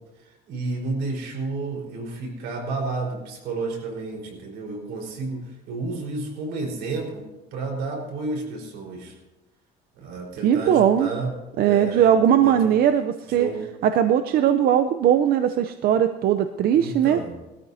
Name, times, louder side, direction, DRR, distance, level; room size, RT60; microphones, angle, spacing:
voice 1, 0.2-9.2 10.0-11.3 11.6-12.7 13.3-13.6 16.7-17.3, right 3 dB, 90° right, 0 dB, 4.4 m, -31 dB
voice 2, 10.4-11.1 11.6-13.5 13.8-17.2, right 9 dB, 65° right, 9 dB, 0.6 m, -19 dB
21.0 x 13.5 x 2.7 m, 1.0 s
cardioid pair, 110°, 17 cm